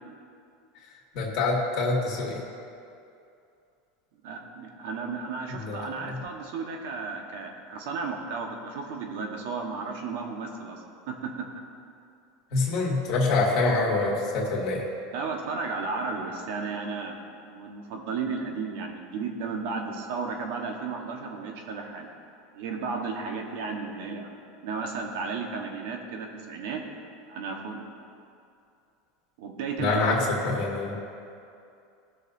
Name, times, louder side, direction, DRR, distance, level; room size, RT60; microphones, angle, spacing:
voice 1, 1.1-2.4 5.5-5.8 12.5-14.8 29.8-30.2 30.4-30.9, left 3 dB, 45° left, -3 dB, 2.2 m, -25 dB
voice 2, 4.2-11.6 15.1-17.2 17.4-22.1 22.5-26.8 27.3-27.8 29.4-30.2, right 4 dB, 70° right, 2 dB, 1.2 m, -34 dB
18.0 x 6.5 x 2.7 m, 2.6 s
supercardioid pair, 160°, 0 cm